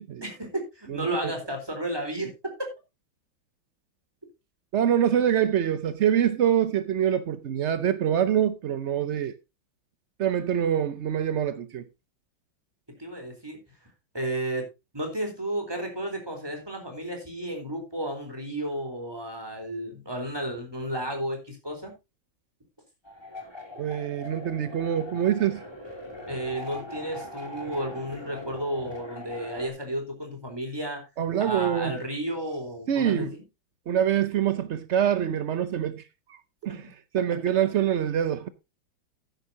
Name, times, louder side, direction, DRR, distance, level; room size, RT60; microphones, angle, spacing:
voice 1, 0.2-2.7 13.0-13.6 14.1-14.7 14.9-21.9 26.3-31.0 31.4-33.4 36.7-36.8, right 1 dB, 10° right, 3.8 m, -32 dB
voice 2, 0.9-1.3 4.7-9.3 10.2-11.8 23.8-25.6 31.2-31.9 32.9-33.3 33.9-36.0 36.3-36.8 37.1-38.5, right 9 dB, 70° right, 0.6 m, -25 dB
sound 1, 23.0-29.7, left 1 dB, 15° left, 2.8 m, -41 dB
13.0 x 10.5 x 2.8 m
omnidirectional pair, 2.1 m